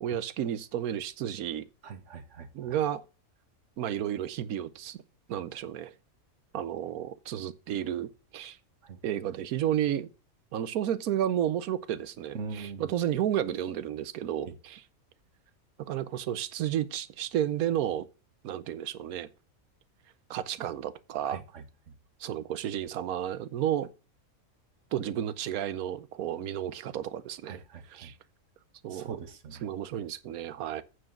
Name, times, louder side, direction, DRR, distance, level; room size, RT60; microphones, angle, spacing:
voice 1, 0.0-1.7 2.5-3.0 3.8-5.0 5.3-5.9 6.5-8.6 9.0-10.1 10.5-14.8 15.8-18.1 18.4-19.3 20.3-21.4 22.2-23.9 24.9-27.6 27.9-28.1 28.8-29.1 29.6-30.8, right 10 dB, 90° right, 1.2 m, -32 dB
voice 2, 1.8-2.7 8.8-9.0 12.3-12.9 14.5-14.6 21.2-21.6 27.5-28.1 28.9-29.6, right 5 dB, 60° right, 1.4 m, -42 dB
8.9 x 4.7 x 7.1 m
omnidirectional pair, 1.5 m